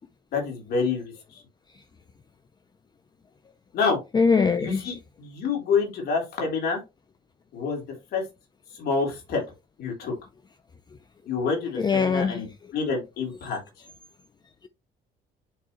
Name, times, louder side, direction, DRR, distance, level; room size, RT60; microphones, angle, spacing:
voice 1, 0.3-1.4 3.7-4.0 4.6-6.8 7.5-7.8 8.1-8.2 8.7-9.4 9.8-10.1 11.3-13.6, left 5 dB, 70° left, 3.6 m, -27 dB
voice 2, 4.1-4.8 11.8-12.4, left 5 dB, 25° left, 0.5 m, -21 dB
10.0 x 3.6 x 3.1 m
cardioid pair, 110°, 17 cm